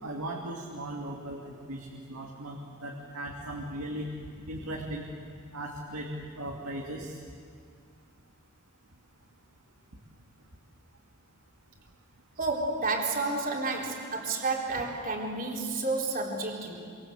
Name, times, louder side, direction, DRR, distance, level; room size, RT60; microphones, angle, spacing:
voice 1, 0.0-4.1 4.5-5.0 5.5-6.1 6.4-7.2, right 1 dB, 75° right, -1 dB, 2.7 m, -38 dB
voice 2, 12.4-16.9, right 3 dB, 40° right, -1 dB, 3.8 m, -31 dB
26.5 x 26.0 x 8.0 m, 2.1 s
head